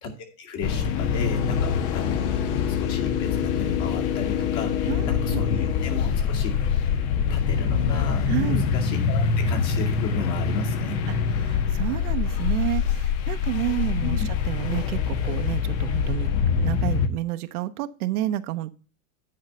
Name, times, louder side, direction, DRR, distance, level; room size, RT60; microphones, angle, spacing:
voice 1, 0.4-6.8 7.3-11.0 14.0-14.3, left 4 dB, 40° left, 2 dB, 2.5 m, -34 dB
sound 1, 0.6-17.1, left 7 dB, 60° left, 1.4 m, -24 dB
voice 2, 4.9-5.4 8.3-8.6 11.1-11.2 11.4-14.2 14.5-16.3 16.6-18.7, right 15 dB, 70° right, 11 dB, 0.9 m, -30 dB
9.7 x 4.6 x 6.6 m, 0.36 s
supercardioid pair, 140°, 46 cm